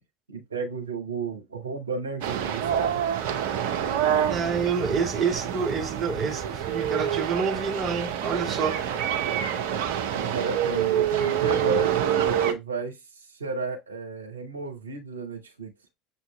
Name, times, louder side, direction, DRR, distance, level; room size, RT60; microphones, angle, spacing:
voice 1, 0.3-3.1 10.1-13.0 13.4-15.7, right 4 dB, 85° right, 0.9 m, -33 dB
sound 1, 2.2-12.5, right 9 dB, 60° right, 0.7 m, -27 dB
voice 2, 4.3-8.8, right 5 dB, 30° right, 0.9 m, -28 dB
6.8 x 2.7 x 2.3 m
figure-of-eight pair, 70°, 0 cm